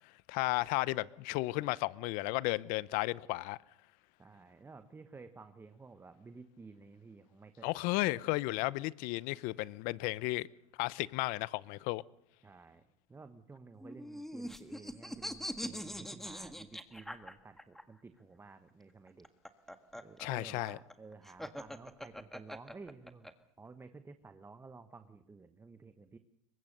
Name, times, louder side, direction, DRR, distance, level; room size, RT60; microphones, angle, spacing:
voice 1, 0.3-3.6 7.6-10.5 10.8-12.0 20.2-20.8, left 20 dB, 60° left, 0.8 m, -34 dB
voice 2, 4.2-7.8 12.4-19.3 19.9-23.3 23.6-26.2, right 4 dB, 15° right, 1.2 m, -53 dB
sound 1, 13.8-17.8 19.1-23.3, equal, ahead, 1.7 m, -43 dB
23.5 x 20.0 x 6.8 m
supercardioid pair, 120°, 16 cm